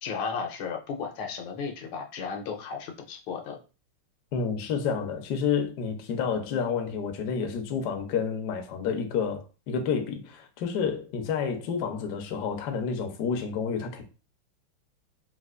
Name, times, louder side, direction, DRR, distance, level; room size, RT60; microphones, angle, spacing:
voice 1, 0.0-3.6, left 5 dB, 90° left, 1.6 m, -34 dB
voice 2, 4.3-14.0, left 6 dB, 75° left, 0.9 m, -29 dB
4.3 x 2.4 x 2.4 m
omnidirectional pair, 2.4 m